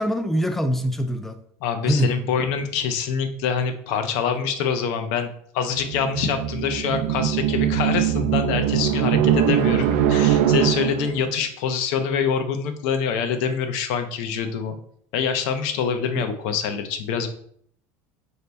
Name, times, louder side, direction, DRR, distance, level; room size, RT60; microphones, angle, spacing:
voice 1, 0.0-1.4 1.8-2.1 9.2-9.6 16.2-16.3, equal, 5° left, 8 dB, 0.3 m, -24 dB
voice 2, 1.6-5.3 5.5-14.8 15.1-17.3, left 7 dB, 70° left, 8 dB, 0.6 m, -25 dB
sound 1, 5.8-11.3, right 10 dB, 85° right, 0.4 m, -22 dB
4.2 x 2.7 x 3.4 m, 0.63 s
cardioid pair, 150°, 7 cm